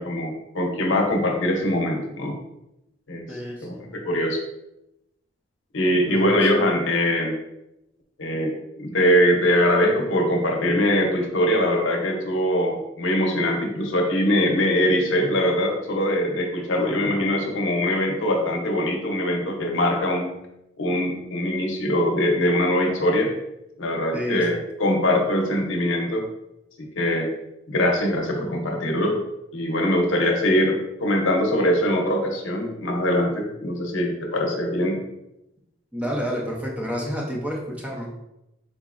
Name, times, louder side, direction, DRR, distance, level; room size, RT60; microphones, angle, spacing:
voice 1, 0.0-2.3 3.1-3.3 3.6-4.4 5.7-7.4 8.2-20.3 20.8-23.3 23.8-26.3 27.0-27.3 27.7-29.2 29.5-35.0, left 1 dB, 75° left, 1 dB, 0.7 m, -22 dB
voice 2, 3.3-3.9 6.1-6.2 17.0-17.3 24.1-24.5 35.9-38.2, equal, 5° right, -3 dB, 0.6 m, -30 dB
3.9 x 3.0 x 2.4 m, 0.89 s
head